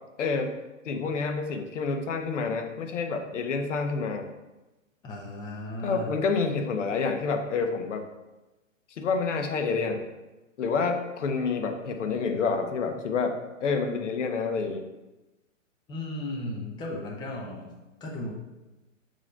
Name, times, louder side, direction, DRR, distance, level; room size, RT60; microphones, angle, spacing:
voice 1, 0.2-0.5 0.8-4.3 5.8-8.0 9.0-10.0 10.6-14.8, left 4 dB, 65° left, 5 dB, 1.1 m, -28 dB
voice 2, 5.0-6.1 15.9-18.3, left 1 dB, 10° left, -2 dB, 0.8 m, -35 dB
6.4 x 3.1 x 5.4 m, 1.1 s
hypercardioid pair, 130°, 40 cm